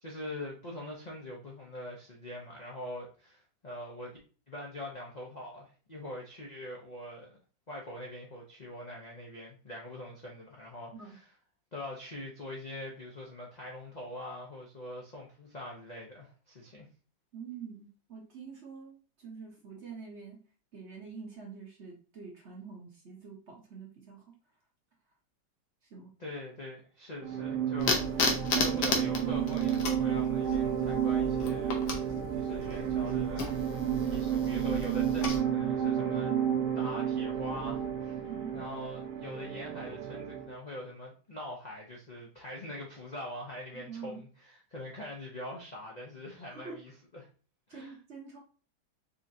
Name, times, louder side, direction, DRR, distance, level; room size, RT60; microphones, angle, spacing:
voice 1, 0.0-4.1 4.5-7.3 7.7-11.2 11.7-16.9 26.2-33.5 34.0-36.4 36.8-38.3 38.5-47.3 47.7-48.0, left 1 dB, 50° left, -2 dB, 0.4 m, -43 dB
voice 2, 17.3-20.4 20.7-24.3 25.9-26.1 38.2-38.6 43.7-44.2 46.5-46.8 47.7-48.4, right 5 dB, 50° right, 0 dB, 1.0 m, -46 dB
sound 1, 27.2-40.5, right 9 dB, 70° right, 1.2 m, -31 dB
sound 2, 27.8-35.4, left 3 dB, 70° left, 1.5 m, -34 dB
5.4 x 2.8 x 2.6 m, 0.38 s
omnidirectional pair, 2.0 m